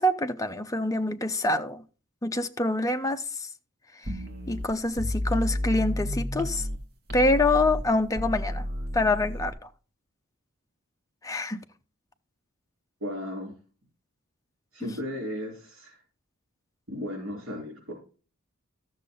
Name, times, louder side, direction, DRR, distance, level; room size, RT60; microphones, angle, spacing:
voice 1, 0.0-1.8 2.2-3.5 4.0-4.1 4.5-6.7 7.1-8.6 8.9-9.7 11.2-11.6, left 2 dB, 15° left, 0.7 m, -26 dB
sound 1, 4.1-6.8 7.1-9.5, left 1 dB, 45° right, 1.7 m, -31 dB
voice 2, 13.0-13.5 14.7-16.0 16.9-17.9, left 1 dB, 70° right, 4.2 m, -35 dB
13.0 x 6.5 x 3.8 m
head